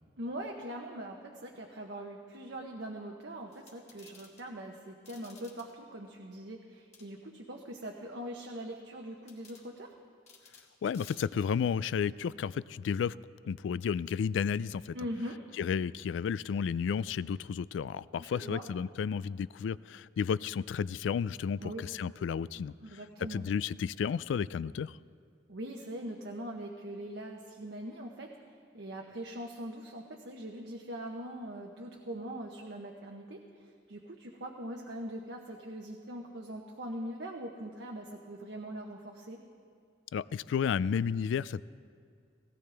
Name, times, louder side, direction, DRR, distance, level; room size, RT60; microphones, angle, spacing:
voice 1, 0.2-9.9 14.9-15.4 18.2-18.7 21.6-21.8 22.8-23.4 25.5-28.3 28.7-39.4, right 1 dB, 70° right, 1 dB, 1.0 m, -42 dB
sound 1, 3.5-4.5 5.1-5.7 6.9-7.1 9.3-9.7 10.3-10.7 10.9-11.2, left 5 dB, 35° left, 2.1 m, -56 dB
voice 2, 10.8-13.2 13.4-15.0 15.6-23.0 23.3-25.0 40.1-41.6, left 7 dB, 90° left, 18 dB, 0.3 m, -32 dB
17.5 x 17.5 x 3.4 m, 2.2 s
head